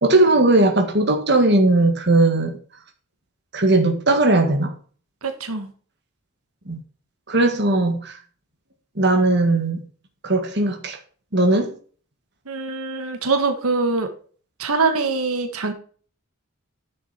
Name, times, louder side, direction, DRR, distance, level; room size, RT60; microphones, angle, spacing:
voice 1, 0.0-2.6 3.5-4.7 6.7-6.8 7.3-8.2 9.0-9.8 10.2-11.0 11.3-11.7, right 2 dB, 50° right, 1.8 m, -18 dB
voice 2, 5.2-5.7 12.5-14.1 14.6-15.7, right 4 dB, 85° right, 1.5 m, -23 dB
10.0 x 7.6 x 4.3 m
head